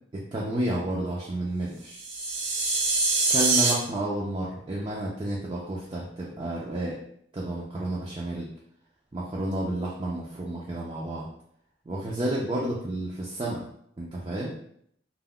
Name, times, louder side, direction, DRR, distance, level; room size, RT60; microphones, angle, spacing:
voice 1, 0.1-2.0 3.3-7.0 7.3-8.5 9.1-11.3 11.9-13.6 14.0-14.5, right 1 dB, 25° right, -5 dB, 0.4 m, -31 dB
sound 1, 1.9-3.7, right 3 dB, 80° right, 0.6 m, -24 dB
2.2 x 2.1 x 3.6 m, 0.68 s
head